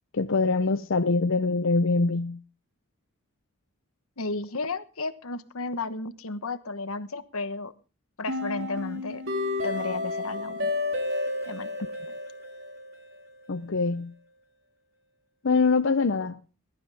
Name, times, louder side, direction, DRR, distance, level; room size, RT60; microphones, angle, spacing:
voice 1, 0.1-2.4 13.5-14.1 15.4-16.4, left 4 dB, 65° left, 0.6 m, -24 dB
voice 2, 4.2-7.7 8.2-9.2 9.6-10.7 11.5-11.7, left 3 dB, 90° left, 1.2 m, -33 dB
sound 1, 8.3-13.3, left 2 dB, 65° right, 3.4 m, -31 dB
21.0 x 12.5 x 3.5 m
head